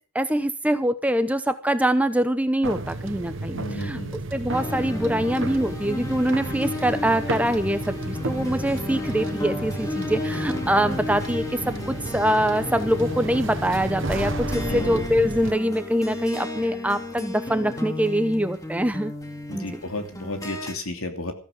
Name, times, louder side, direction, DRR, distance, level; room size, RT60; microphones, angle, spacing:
voice 1, 0.1-4.0 4.3-19.1 19.5-19.8, equal, 5° right, 10 dB, 0.8 m, -24 dB
sound 1, 2.6-15.5, right 2 dB, 60° right, 1.2 m, -33 dB
voice 2, 3.5-4.2 14.7-15.0 19.5-21.3, left 1 dB, 75° left, 5 dB, 3.0 m, -33 dB
sound 2, 4.5-20.7, left 1 dB, 15° left, 2.3 m, -33 dB
15.0 x 14.5 x 5.3 m, 0.38 s
head